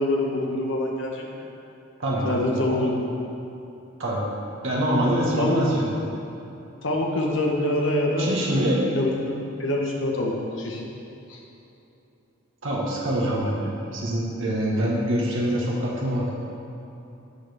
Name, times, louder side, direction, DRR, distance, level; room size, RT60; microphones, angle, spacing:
voice 1, 0.0-1.4 2.2-2.9 5.1-5.6 6.8-9.3 9.6-10.8 11.3-11.4, left 1 dB, 65° left, -1 dB, 1.2 m, -25 dB
voice 2, 2.0-2.4 2.7-2.8 4.0-4.3 4.6-5.9 8.2-8.8 12.6-16.3, right 1 dB, 65° right, -5 dB, 1.5 m, -25 dB
12.0 x 6.3 x 3.5 m, 2.9 s
head